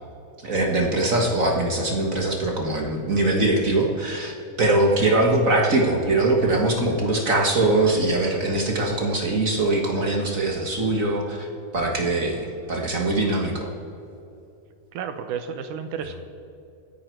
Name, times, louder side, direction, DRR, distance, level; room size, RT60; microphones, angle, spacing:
voice 1, 0.4-11.5 11.7-13.7, right 2 dB, 45° right, 0 dB, 1.0 m, -22 dB
voice 2, 14.9-16.2, right 7 dB, 75° right, 8 dB, 2.5 m, -32 dB
26.5 x 9.7 x 4.6 m, 2.8 s
omnidirectional pair, 3.7 m